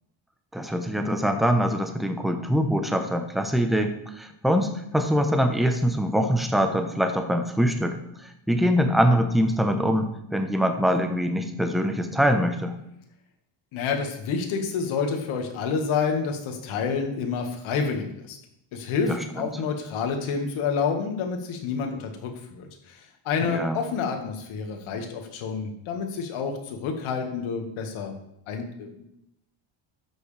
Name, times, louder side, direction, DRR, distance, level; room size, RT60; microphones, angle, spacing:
voice 1, 0.5-12.8 19.1-19.5 23.4-23.8, equal, ahead, 6 dB, 0.9 m, -24 dB
voice 2, 13.7-18.4 18.7-28.1 28.5-29.1, left 5 dB, 75° left, 4 dB, 1.9 m, -29 dB
13.0 x 6.3 x 3.4 m, 0.81 s
cardioid pair, 110°, 48 cm